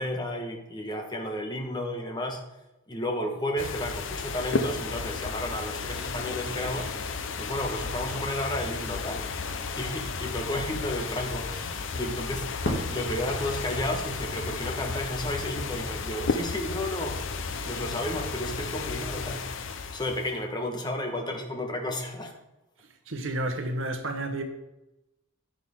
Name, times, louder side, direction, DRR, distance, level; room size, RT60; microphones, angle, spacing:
voice 1, 0.0-2.4 2.9-6.9 7.4-9.3 9.8-19.5 19.9-22.3, left 1 dB, 20° left, 1.2 m, -32 dB
sound 1, 3.6-20.4, left 4 dB, 65° left, 0.7 m, -33 dB
Crackle, 8.6-16.4, left 1 dB, 50° left, 2.3 m, -41 dB
voice 2, 23.1-24.4, right 1 dB, 70° right, 1.1 m, -31 dB
10.5 x 7.7 x 3.6 m
head